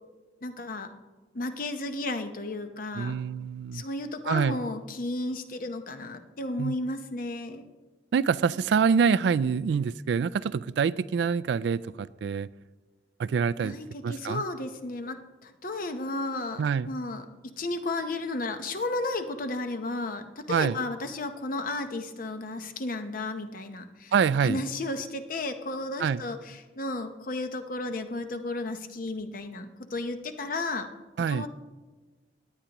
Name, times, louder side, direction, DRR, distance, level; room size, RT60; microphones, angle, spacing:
voice 1, 0.4-0.9 1.3-3.2 3.7-7.7 13.6-17.3 17.6-24.1 24.4-30.9 31.3-31.5, left 2 dB, 50° left, 0.8 m, -33 dB
voice 2, 3.0-3.8 4.3-4.6 6.6-6.7 8.1-12.5 13.2-13.7 14.0-14.4 16.6-16.9 20.5-20.8 24.1-24.6 26.0-26.2 31.2-31.5, right 6 dB, 70° right, 0.3 m, -26 dB
17.0 x 10.0 x 2.9 m
head